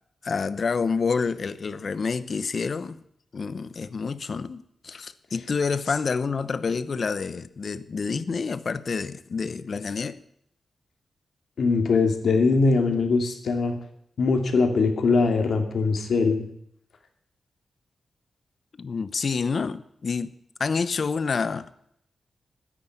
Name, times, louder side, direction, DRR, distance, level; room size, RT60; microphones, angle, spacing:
voice 1, 0.2-3.0 3.3-10.2 18.8-20.3 20.6-21.7, left 5 dB, 45° left, 0.9 m, -28 dB
voice 2, 11.6-13.7 14.2-16.4, left 4 dB, 70° left, 2.6 m, -21 dB
13.0 x 10.0 x 9.3 m
wide cardioid pair, 150°, 0 cm